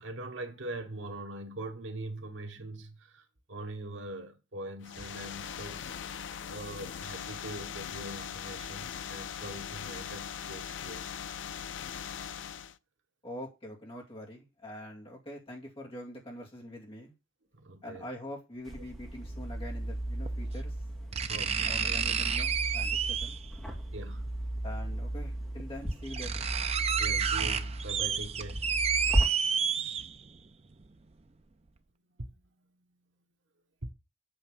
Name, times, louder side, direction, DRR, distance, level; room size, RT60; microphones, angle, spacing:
voice 1, 0.0-5.8 6.5-11.1 17.5-18.0 21.3-22.0 23.9-24.3 27.0-28.7 32.2-32.9 33.8-33.9, right 1 dB, 75° right, 1.5 m, -42 dB
sound 1, 4.8-12.8, left 8 dB, 75° left, 0.5 m, -40 dB
voice 2, 13.2-17.1 17.8-20.7 21.6-23.4 24.6-26.5, left 1 dB, 30° left, 2.4 m, -44 dB
sound 2, 18.7-29.2, right 1 dB, ahead, 2.4 m, -35 dB
sound 3, 18.7-18.8 20.3-20.4 21.1-23.5 24.9-25.0 25.6-25.7 25.9-30.4 30.8-30.9, right 7 dB, 30° right, 0.5 m, -30 dB
8.1 x 3.7 x 6.7 m
head